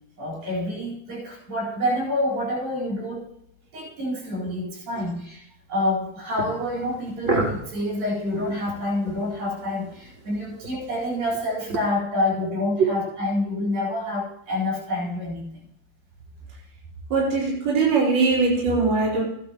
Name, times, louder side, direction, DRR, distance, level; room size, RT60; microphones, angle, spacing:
voice 1, 0.2-3.3 3.7-5.4 5.7-15.5, left 1 dB, 70° right, -3 dB, 6.1 m, -27 dB
sound 1, 6.3-11.9, right 2 dB, 25° right, 2.3 m, -33 dB
voice 2, 17.1-19.2, right 4 dB, 50° right, -7 dB, 4.9 m, -21 dB
15.0 x 11.0 x 3.0 m, 0.73 s
omnidirectional pair, 4.2 m